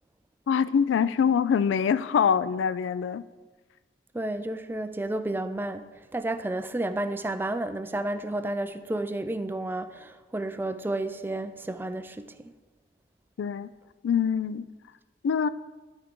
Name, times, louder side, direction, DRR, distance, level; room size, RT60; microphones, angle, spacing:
voice 1, 0.5-3.2 13.4-13.7 14.0-14.7 15.2-15.5, left 7 dB, 85° left, 0.3 m, -24 dB
voice 2, 4.1-5.9 6.1-12.5, right 1 dB, 10° right, 0.3 m, -31 dB
13.0 x 4.5 x 3.7 m
head